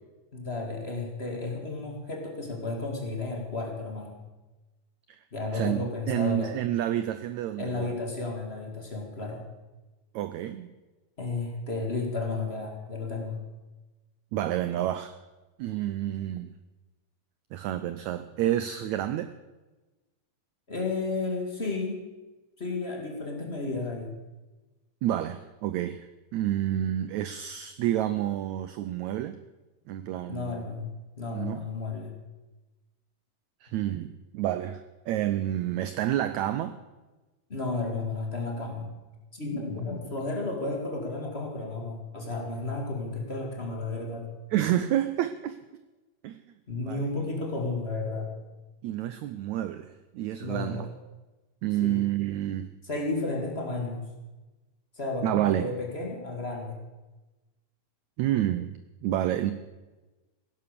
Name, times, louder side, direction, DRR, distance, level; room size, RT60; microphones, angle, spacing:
voice 1, 0.3-4.2 5.3-6.5 7.6-9.4 11.2-13.4 20.7-22.0 22.6-24.1 30.3-30.9 31.2-32.2 37.5-38.9 39.3-44.3 46.7-48.3 50.4-50.8 51.8-52.0 52.8-54.0 55.0-56.8, left 3 dB, 25° left, 1 dB, 1.7 m, -33 dB
voice 2, 5.5-7.9 10.1-10.7 14.3-15.1 15.6-16.5 17.5-19.3 25.0-26.1 26.3-29.4 29.9-30.6 31.3-31.6 33.6-36.7 44.5-45.6 46.2-46.4 46.9-47.0 48.8-50.9 51.6-52.7 55.2-55.7 58.2-58.7 59.0-59.5, right 12 dB, 90° right, 11 dB, 1.6 m, -29 dB
16.5 x 11.0 x 6.7 m, 1.2 s
omnidirectional pair, 4.0 m